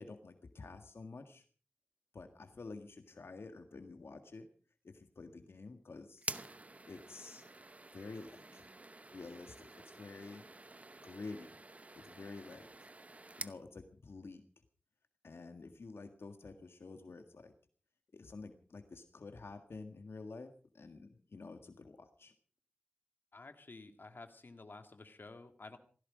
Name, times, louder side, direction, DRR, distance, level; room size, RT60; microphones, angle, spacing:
voice 1, 0.0-1.4 2.1-4.5 4.8-6.3 6.9-7.4 7.9-8.6 9.1-10.4 11.0-11.6 11.9-12.9 13.4-14.4 15.2-17.5 18.1-22.3, left 3 dB, 85° left, 7 dB, 1.7 m, -49 dB
sound 1, 6.2-13.6, right 2 dB, 35° right, 0.8 m, -49 dB
voice 2, 23.3-25.8, left 3 dB, 60° left, 7 dB, 2.2 m, -52 dB
18.0 x 15.5 x 5.0 m, 0.41 s
wide cardioid pair, 70°, 4 cm